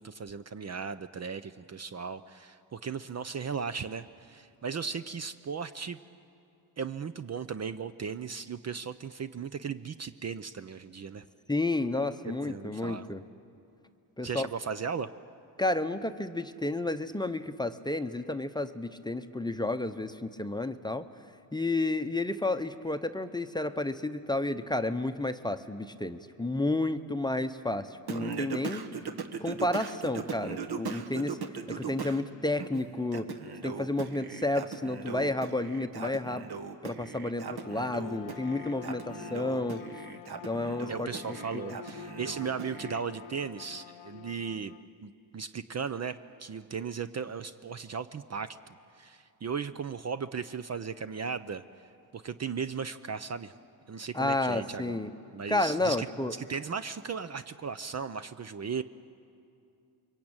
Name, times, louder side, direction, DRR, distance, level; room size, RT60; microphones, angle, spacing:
voice 1, 0.0-6.0 6.8-11.2 12.5-13.1 14.2-15.1 40.9-44.7 45.0-51.6 52.1-53.5 53.9-55.0 55.3-56.1 56.4-58.8, right 6 dB, 35° right, 12 dB, 0.7 m, -36 dB
voice 2, 11.5-13.2 14.2-14.5 15.6-21.1 21.5-28.9 29.4-31.4 31.7-33.3 33.6-36.5 36.8-39.8 40.4-41.1 41.5-41.8 54.1-55.1 55.5-56.3, left 2 dB, 10° left, 9 dB, 0.9 m, -31 dB
Singing, 28.1-32.2 32.6-43.0, right 5 dB, 55° right, 1.8 m, -39 dB
Bowed string instrument, 37.4-44.9, left 11 dB, 90° left, 0.8 m, -47 dB
28.5 x 23.5 x 8.9 m, 2.6 s
cardioid pair, 100°, 46 cm